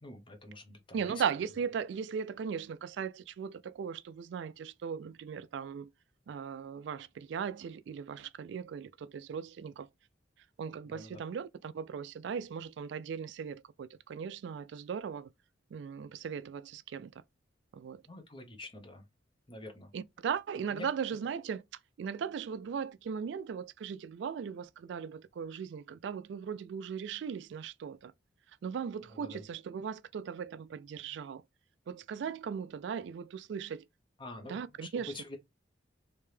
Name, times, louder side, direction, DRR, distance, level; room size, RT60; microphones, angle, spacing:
voice 1, 0.0-1.2 10.8-11.2 18.1-19.1 19.5-19.9 20.7-20.9 21.1-21.2 29.1-29.4 34.2-35.4, left 2 dB, 25° left, 0.8 m, -47 dB
voice 2, 0.9-5.9 6.3-9.9 10.6-15.3 15.7-17.2 17.7-18.0 19.9-21.6 22.0-28.1 28.6-31.4 31.9-33.9 34.5-35.1, right 7 dB, 70° right, 0.3 m, -38 dB
3.3 x 2.8 x 3.1 m
head